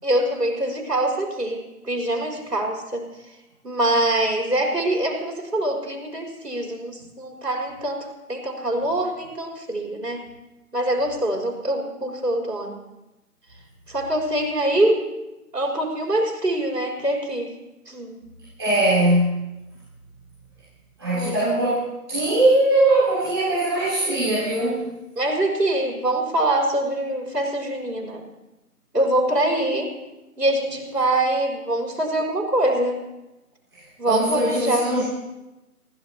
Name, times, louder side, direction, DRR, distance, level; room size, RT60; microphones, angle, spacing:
voice 1, 0.0-3.0 3.6-10.2 10.7-12.8 13.9-15.1 15.5-17.5 17.9-18.2 21.1-21.4 25.2-28.3 28.9-29.9 30.4-33.0 34.0-35.0, right 1 dB, 80° right, 0 dB, 4.3 m, -24 dB
voice 2, 18.6-19.4 21.0-24.9 34.0-35.0, right 1 dB, 15° right, -14 dB, 3.4 m, -21 dB
26.0 x 15.0 x 2.9 m, 0.98 s
figure-of-eight pair, 175°, 47 cm